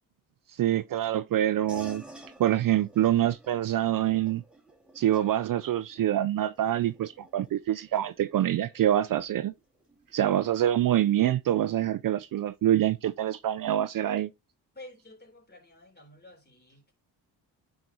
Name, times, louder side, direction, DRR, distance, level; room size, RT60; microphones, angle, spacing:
voice 1, 0.6-2.0 2.4-4.4 5.0-9.5 10.1-14.3, right 12 dB, 50° right, 0.5 m, -26 dB
sound 1, 1.7-11.5, right 2 dB, ahead, 2.1 m, -52 dB
voice 2, 14.7-16.9, left 1 dB, 25° left, 3.6 m, -50 dB
9.1 x 5.0 x 2.9 m
supercardioid pair, 60°, 42 cm